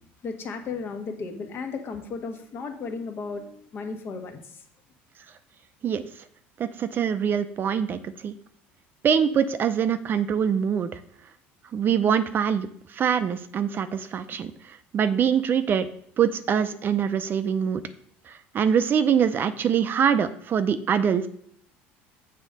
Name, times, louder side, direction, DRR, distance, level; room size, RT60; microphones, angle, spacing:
voice 1, 0.2-4.6, left 4 dB, 45° left, 5 dB, 1.3 m, -35 dB
voice 2, 6.6-8.3 9.0-10.9 11.7-15.9 16.2-17.8 18.3-21.3, right 7 dB, 40° right, 11 dB, 0.5 m, -24 dB
7.2 x 3.7 x 6.5 m, 0.64 s
supercardioid pair, 95°, 5 cm